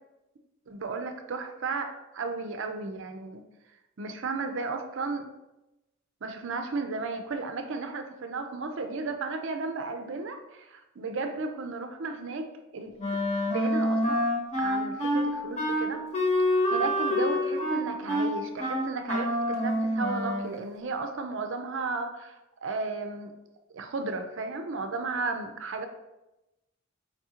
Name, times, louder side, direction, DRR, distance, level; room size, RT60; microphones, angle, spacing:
voice 1, 0.7-3.4 4.0-5.3 6.2-12.5 12.7-12.9 13.5-14.3 14.6-16.0 16.4-22.4 22.6-23.3 23.7-25.9, right 3 dB, 60° right, 6 dB, 0.5 m, -34 dB
Wind instrument woodwind instrument, 13.0-20.6, left 1 dB, 35° left, 1.0 m, -27 dB
4.7 x 3.6 x 2.9 m, 0.97 s
head